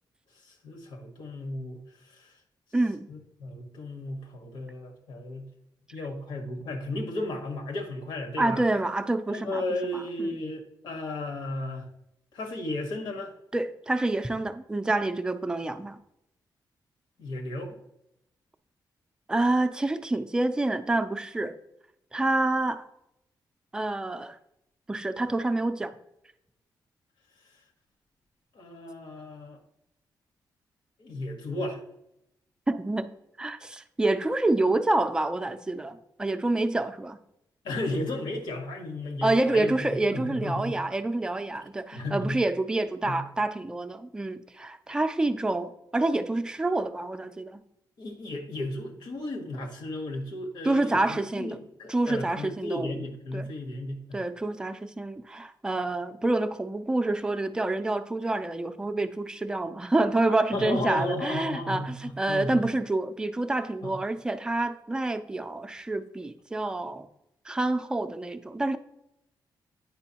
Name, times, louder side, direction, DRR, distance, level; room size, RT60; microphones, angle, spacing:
voice 1, 0.4-2.3 3.1-5.5 5.9-8.6 9.3-11.9 12.3-13.3 17.2-17.8 28.5-29.6 31.0-31.8 37.6-39.8 40.1-40.8 41.9-42.4 43.1-43.2 48.0-54.2 60.5-62.6 63.8-64.0, left 1 dB, 80° left, 1.4 m, -34 dB
voice 2, 2.7-3.1 8.4-9.6 9.9-10.3 13.5-16.0 19.3-21.5 22.1-22.9 23.7-24.4 24.9-25.9 32.7-37.2 39.2-47.6 50.6-51.6 51.9-53.0 53.3-53.5 54.1-67.1 67.5-68.8, right 2 dB, 10° right, 0.4 m, -27 dB
8.9 x 5.2 x 2.8 m
wide cardioid pair, 175°, 8 cm